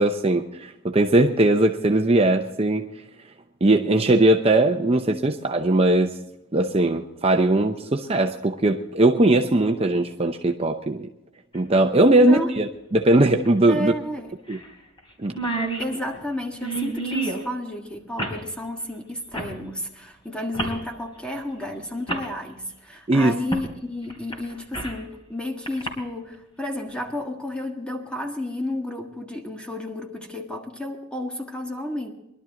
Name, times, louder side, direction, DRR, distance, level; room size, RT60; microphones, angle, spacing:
voice 1, 0.0-2.9 3.6-6.2 6.5-11.1 11.5-13.9 14.5-14.6 15.2-15.4 23.1-23.3, right 2 dB, 30° right, 3 dB, 0.7 m, -19 dB
sound 1, 11.5-11.6 13.4-13.5 13.8-13.9 14.5-14.7 15.0-15.1 15.2-17.4 18.2-18.4 19.3-19.5 20.5-20.8 21.6-21.7 22.1-22.3 23.5-23.7 24.1-25.0 25.7-25.9, right 2 dB, 25° left, 3.3 m, -29 dB
voice 2, 12.2-12.5 13.7-14.3 15.8-32.1, left 1 dB, 5° left, 2 dB, 1.6 m, -32 dB
22.0 x 12.0 x 3.8 m, 0.87 s
head